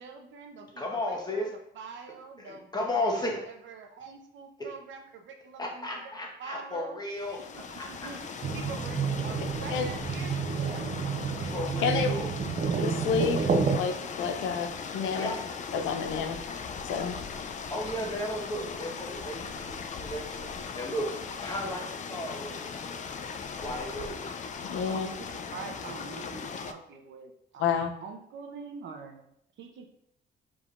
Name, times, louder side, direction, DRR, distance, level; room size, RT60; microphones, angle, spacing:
voice 1, 0.0-6.0 6.4-7.0 7.5-8.2 8.5-12.3 24.8-29.2 29.6-29.9, right 5 dB, 70° right, 4 dB, 0.7 m, -45 dB
voice 2, 0.8-1.5 2.4-3.4 4.6-4.7 5.6-8.1 11.4-12.3 15.1-15.4 17.7-21.1 21.4-22.9 23.6-24.3, left 1 dB, 20° left, 0 dB, 1.1 m, -34 dB
sound 1, 7.1-26.7, left 5 dB, 40° left, 0.4 m, -39 dB
sound 2, 8.4-13.8, right 5 dB, 35° right, 0.4 m, -29 dB
voice 3, 12.8-13.4 13.7-14.7 14.9-15.3 15.7-16.4 16.9-17.1 17.4-17.5 24.7-25.1 27.6-27.9, left 7 dB, 90° left, 6 dB, 0.5 m, -29 dB
4.9 x 3.6 x 2.4 m, 0.74 s
cardioid pair, 90°, 20 cm